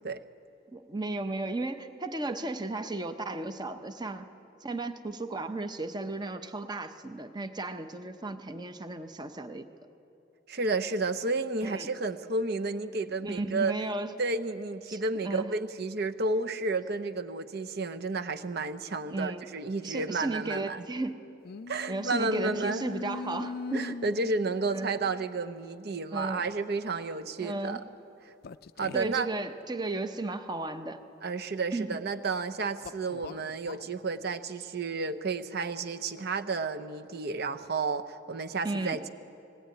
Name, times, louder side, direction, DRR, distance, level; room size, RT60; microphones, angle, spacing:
voice 1, 0.7-4.3 4.6-9.7 11.6-11.9 13.2-14.2 14.9-15.5 19.1-19.5 19.8-21.2 21.9-24.0 24.7-24.9 26.1-26.4 27.4-27.8 28.9-31.0 31.7-32.0 38.6-39.0, right 2 dB, 20° right, 9 dB, 0.8 m, -34 dB
voice 2, 10.5-13.7 14.2-20.8 21.7-22.9 23.7-27.8 28.8-29.3 31.2-39.1, right 3 dB, 55° right, 9 dB, 0.8 m, -31 dB
sound 1, 21.4-25.4 26.3-26.5 28.4-29.2 32.8-33.9, left 4 dB, 50° left, 0.4 m, -42 dB
20.0 x 17.0 x 9.2 m, 2.7 s
head